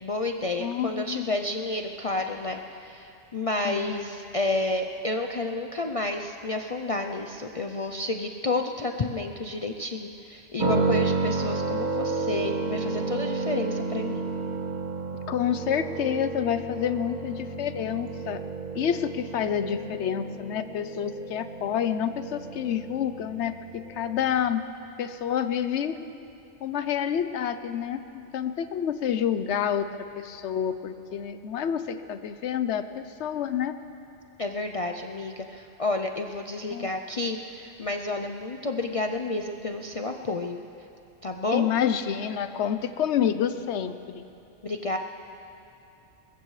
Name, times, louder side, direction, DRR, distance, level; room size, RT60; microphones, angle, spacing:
voice 1, 0.0-14.2 34.4-40.6 41.2-41.7 44.6-45.0, left 2 dB, 45° left, 4 dB, 0.4 m, -30 dB
voice 2, 0.6-1.3 3.6-4.1 15.3-18.4 18.7-24.6 25.0-26.0 26.6-33.7 36.7-36.9 41.5-44.3, left 9 dB, 70° left, 11 dB, 1.0 m, -28 dB
sound 1, 10.6-24.4, right 3 dB, 40° right, 1.5 m, -31 dB
22.0 x 20.5 x 3.2 m, 2.7 s
omnidirectional pair, 1.3 m